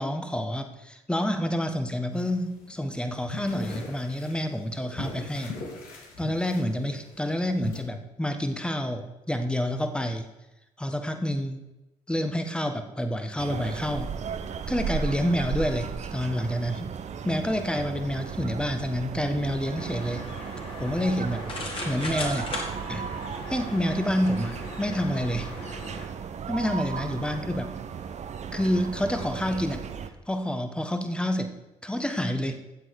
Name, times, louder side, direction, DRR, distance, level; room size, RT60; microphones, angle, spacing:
voice 1, 0.0-5.5 6.2-10.3 10.8-11.6 12.1-14.1 14.7-16.9 17.2-20.3 20.8-21.5 21.8-22.5 22.9-23.1 23.5-25.5 26.5-27.7 28.5-29.9 30.3-32.6, equal, 5° left, 7 dB, 1.4 m, -28 dB
sound 1, 2.2-7.8, left 3 dB, 75° left, 2.6 m, -40 dB
sound 2, 13.4-30.1, right 7 dB, 50° right, 0.9 m, -36 dB
sound 3, 19.7-26.1, left 2 dB, 35° left, 3.0 m, -38 dB
13.0 x 7.7 x 4.9 m, 0.98 s
supercardioid pair, 60°, 15 cm